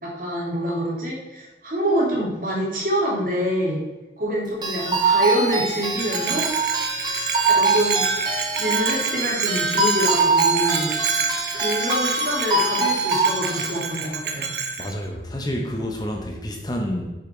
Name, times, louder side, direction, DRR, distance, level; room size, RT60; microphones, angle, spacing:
voice 1, 0.0-3.8 4.2-6.8 7.2-8.0 8.6-10.9 11.5-14.5, equal, 50° right, -4 dB, 3.1 m, -26 dB
sound 1, 4.6-13.7, right 3 dB, 25° right, 1.6 m, -23 dB
Bell, 6.0-14.9, right 5 dB, 80° right, 1.1 m, -28 dB
voice 2, 14.8-17.1, equal, 25° left, 1 dB, 1.1 m, -28 dB
9.1 x 7.1 x 4.6 m, 1.1 s
head